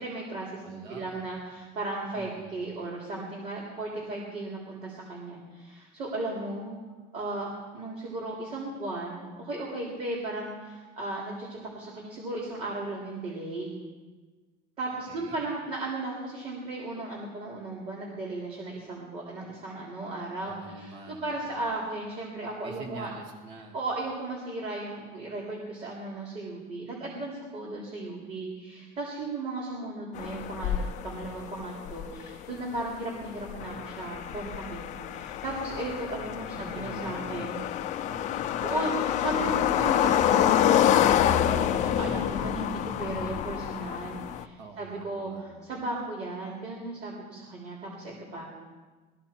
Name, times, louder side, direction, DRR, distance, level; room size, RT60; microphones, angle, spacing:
voice 1, 0.0-6.8 7.1-13.7 14.8-23.1 23.7-30.8 31.0-37.6 38.6-48.5, right 2 dB, 35° right, -3 dB, 3.3 m, -36 dB
voice 2, 0.6-1.2 2.1-2.6 15.1-15.5 20.4-21.8 22.6-23.8 36.5-37.8 38.0-38.6 44.6-45.7, right 3 dB, 80° right, 2 dB, 2.3 m, -46 dB
sound 1, 30.1-44.4, left 10 dB, 40° left, 0.7 m, -27 dB
22.0 x 13.5 x 4.5 m, 1.3 s
cardioid pair, 170°, 18 cm